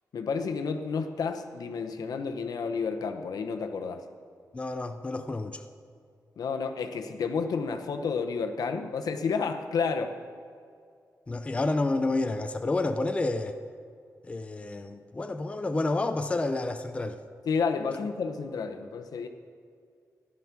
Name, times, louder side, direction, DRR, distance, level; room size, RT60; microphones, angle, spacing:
voice 1, 0.1-4.0 6.4-10.2 17.5-19.3, left 5 dB, 80° left, 6 dB, 0.9 m, -30 dB
voice 2, 4.5-5.6 11.3-13.6 14.2-17.2, left 2 dB, 20° left, 7 dB, 0.5 m, -29 dB
14.0 x 11.0 x 6.0 m, 2.2 s
wide cardioid pair, 160°, 6 cm